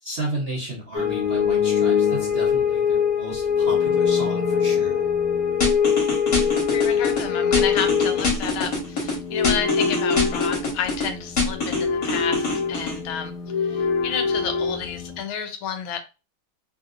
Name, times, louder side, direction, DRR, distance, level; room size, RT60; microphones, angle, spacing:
voice 1, 0.0-4.9, right 2 dB, 50° right, -5 dB, 0.7 m, -33 dB
sound 1, 0.9-15.2, left 7 dB, 70° left, 0.8 m, -23 dB
sound 2, 5.6-7.2 7.5-9.1 9.4-11.1 11.4-13.0, left 3 dB, 50° left, 1.5 m, -24 dB
voice 2, 6.7-16.0, left 7 dB, 90° left, 8 dB, 1.5 m, -31 dB
3.4 x 2.7 x 2.4 m, 0.30 s
omnidirectional pair, 2.2 m